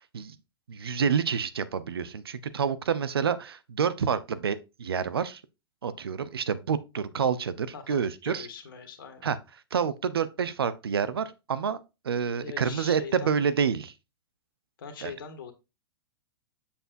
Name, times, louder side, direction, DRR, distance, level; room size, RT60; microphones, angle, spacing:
voice 1, 0.7-5.4 5.8-8.5 9.2-9.4 9.7-11.8 12.0-13.9 15.0-15.1, right 7 dB, 75° right, 0.7 m, -28 dB
voice 2, 7.7-9.3 12.4-13.4 14.8-15.5, left 7 dB, 60° left, 1.8 m, -42 dB
7.8 x 7.1 x 2.5 m
figure-of-eight pair, 105°, 13 cm